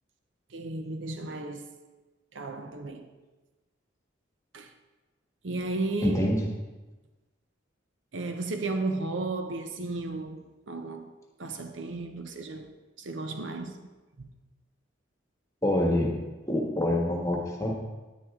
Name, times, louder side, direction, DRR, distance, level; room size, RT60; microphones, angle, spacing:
voice 1, 0.5-1.8 2.3-3.1 4.5-4.7 5.4-6.3 8.1-11.1 11.4-13.8 14.2-14.3, right 2 dB, 75° right, 0.7 m, -34 dB
voice 2, 6.0-6.5 15.6-16.2 16.5-17.7, left 1 dB, 15° left, 1.4 m, -26 dB
10.5 x 9.9 x 3.6 m
head